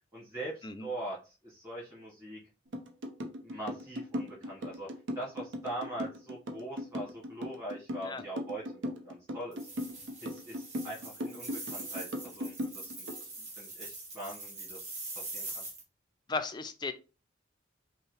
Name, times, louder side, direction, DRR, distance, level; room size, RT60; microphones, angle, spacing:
voice 1, 0.1-1.2 1.4-2.4 3.4-4.9 5.1-9.6 10.2-13.3 13.6-15.6, right 1 dB, 15° right, -7 dB, 1.5 m, -42 dB
sound 1, 2.7-13.2, equal, 75° right, 0.7 m, -38 dB
sound 2, 9.5-15.8, right 2 dB, 35° right, 1.4 m, -43 dB
voice 2, 16.3-16.9, left 3 dB, 20° left, 9 dB, 0.4 m, -35 dB
5.4 x 2.0 x 3.2 m, 0.32 s
head